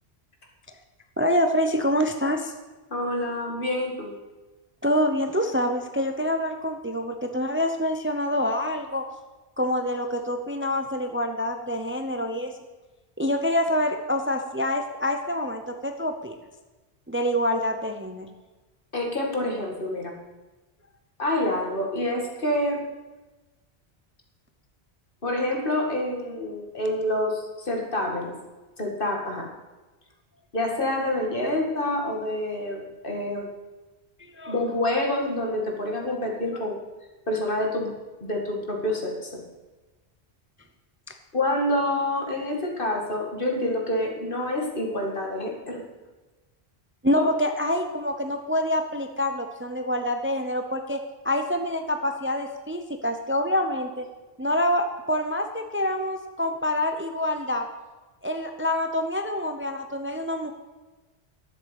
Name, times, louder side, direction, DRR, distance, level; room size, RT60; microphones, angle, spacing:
voice 1, 1.2-2.5 4.8-9.0 9.6-12.5 13.2-16.4 17.1-18.3 34.2-34.6 41.1-41.2 47.0-51.0 51.2-54.1 54.4-57.7 58.2-60.5, left 1 dB, 15° right, 6 dB, 0.7 m, -26 dB
voice 2, 2.9-4.1 18.9-20.2 21.2-22.8 25.2-28.3 28.8-29.5 30.5-33.5 34.5-36.7 37.3-37.9 38.2-39.4 41.3-45.8 47.2-47.3, left 1 dB, 55° left, 1 dB, 2.4 m, -27 dB
12.5 x 7.4 x 8.3 m, 1.2 s
omnidirectional pair, 1.1 m